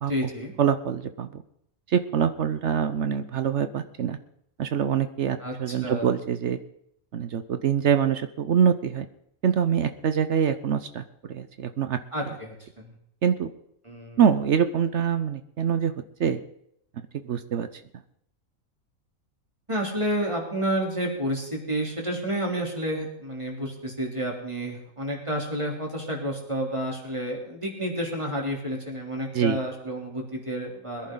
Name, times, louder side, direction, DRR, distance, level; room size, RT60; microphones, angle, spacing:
voice 1, 0.1-0.5 5.4-6.1 12.1-12.9 13.8-14.2 19.7-31.1, right 1 dB, 20° right, 0 dB, 3.3 m, -30 dB
voice 2, 0.6-1.4 1.9-4.2 4.6-6.6 7.1-9.1 9.4-11.0 11.3-12.0 13.2-13.5 14.2-15.9 16.2-16.4 17.2-17.7 29.3-29.6, right 8 dB, 60° right, 10 dB, 0.9 m, -24 dB
21.5 x 10.5 x 3.8 m, 0.76 s
omnidirectional pair, 1.5 m